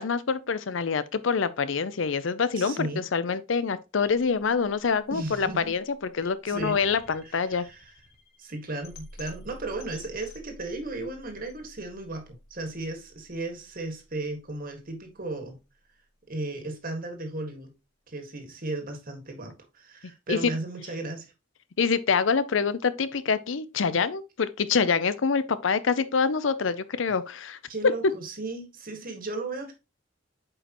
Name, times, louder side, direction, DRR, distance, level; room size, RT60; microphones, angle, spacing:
voice 1, 0.0-5.8 6.1-7.7 20.3-20.4 21.8-27.6, left 5 dB, 75° left, 0.6 m, -26 dB
voice 2, 2.5-3.0 5.1-5.8 6.4-6.8 7.2-7.9 8.4-15.6 16.3-17.7 18.1-21.3 27.7-29.7, right 2 dB, 45° right, 1.8 m, -35 dB
sound 1, 4.0-16.0, left 1 dB, 55° left, 1.6 m, -51 dB
8.3 x 5.2 x 3.0 m
head